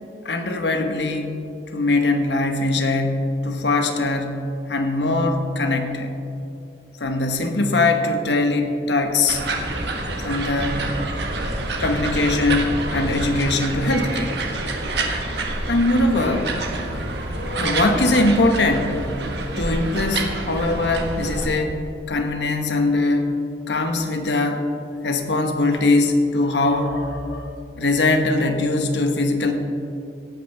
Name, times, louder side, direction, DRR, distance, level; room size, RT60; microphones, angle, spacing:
voice 1, 0.2-1.3 1.7-6.1 7.0-9.4 10.2-11.1 11.8-14.3 15.7-16.6 17.2-19.1 19.6-21.8 22.1-23.4 23.7-24.6 25.0-27.5 27.8-29.5, left 2 dB, 85° left, 5 dB, 1.2 m, -21 dB
sound 1, 9.3-21.5, right 2 dB, 75° right, 1.5 m, -27 dB
17.0 x 11.0 x 3.4 m, 2.7 s
head